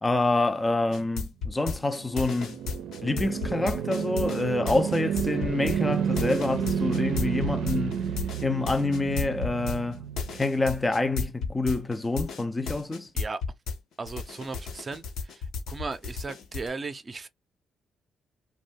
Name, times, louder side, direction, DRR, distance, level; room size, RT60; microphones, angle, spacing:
voice 1, 0.0-2.6 3.0-8.0 8.4-10.1 10.3-13.1, left 2 dB, 15° left, 0.4 m, -27 dB
sound 1, 0.9-13.8 14.1-16.7, left 4 dB, 80° left, 0.8 m, -33 dB
sound 2, 1.6-10.9, right 8 dB, 85° right, 0.5 m, -31 dB
voice 2, 14.0-15.0 15.7-17.3, right 3 dB, 30° right, 0.6 m, -36 dB
2.6 x 2.3 x 3.4 m
cardioid pair, 90°, 0 cm